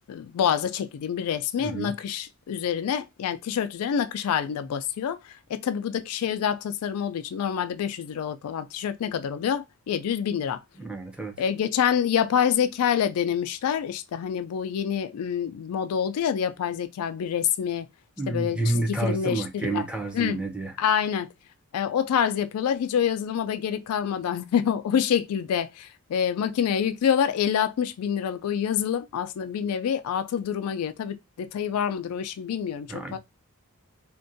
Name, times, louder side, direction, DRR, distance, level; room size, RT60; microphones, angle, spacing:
voice 1, 0.1-10.6 11.4-17.9 18.3-19.9 20.1-20.4 20.8-21.3 21.7-33.2, left 8 dB, 90° left, 0.3 m, -27 dB
voice 2, 1.6-1.9 10.8-11.4 18.2-20.7 32.9-33.2, right 2 dB, 5° right, 0.5 m, -29 dB
2.5 x 2.2 x 2.5 m
head